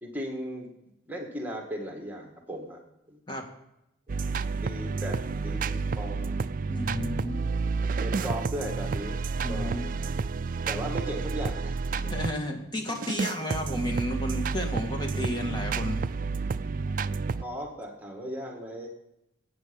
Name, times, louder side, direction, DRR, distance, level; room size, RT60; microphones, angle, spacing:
voice 1, 0.0-0.7 1.1-2.8 3.1-3.2 4.1-4.2 4.6-6.5 8.0-9.2 9.5-9.9 10.7-11.8 12.0-12.1 17.4-18.9, equal, 10° right, 1 dB, 1.8 m, -37 dB
sound 1, 4.1-12.4 12.9-17.4, right 4 dB, 45° right, 0.4 m, -30 dB
voice 2, 6.7-7.4 9.4-9.9 12.1-16.0, left 1 dB, 25° left, 2 dB, 2.0 m, -32 dB
15.5 x 8.8 x 5.3 m, 0.84 s
head